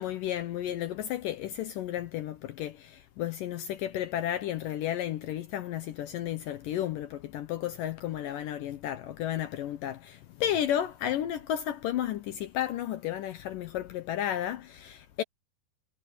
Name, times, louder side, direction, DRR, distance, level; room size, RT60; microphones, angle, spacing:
voice 1, 0.0-15.2, left 11 dB, 70° left, 2.3 m, -33 dB
omnidirectional pair, 4.4 m